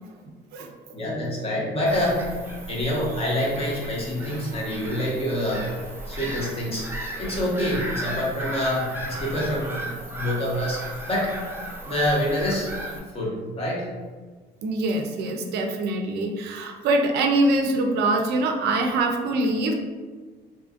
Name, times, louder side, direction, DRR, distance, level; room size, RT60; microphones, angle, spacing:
voice 1, 0.9-2.2 2.7-5.6 6.1-6.9 7.2-10.8 11.1-11.3 11.9-12.7 13.1-13.9, left 1 dB, 35° left, -4 dB, 0.9 m, -26 dB
Bird vocalization bird call bird song / Gull seagull, 1.9-13.0, right 1 dB, 15° right, 0.5 m, -35 dB
voice 2, 14.6-19.7, right 2 dB, 75° right, 3 dB, 0.4 m, -24 dB
2.7 x 2.5 x 2.4 m, 1.4 s
cardioid pair, 110°, 17 cm